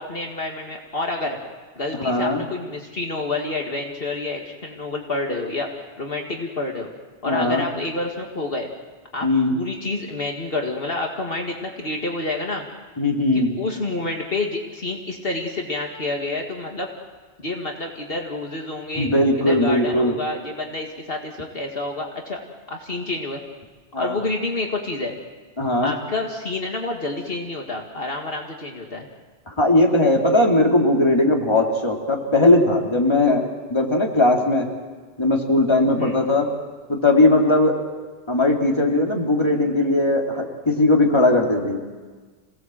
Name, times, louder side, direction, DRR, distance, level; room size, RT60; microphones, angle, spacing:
voice 1, 0.0-1.4 1.8-5.7 6.0-6.9 7.2-8.7 9.1-12.7 13.6-16.9 17.4-19.1 19.5-22.4 22.7-23.4 24.0-25.2 25.8-29.1 36.0-36.2, left 2 dB, 60° left, 1 dB, 2.2 m, -28 dB
voice 2, 1.9-2.4 7.3-7.6 9.2-9.5 13.0-13.5 19.0-20.2 23.9-24.2 25.6-25.9 29.6-34.7 35.2-36.5 36.9-37.8 38.3-41.8, left 2 dB, 25° left, 0 dB, 2.7 m, -19 dB
27.0 x 18.0 x 7.6 m, 1.4 s
omnidirectional pair, 1.1 m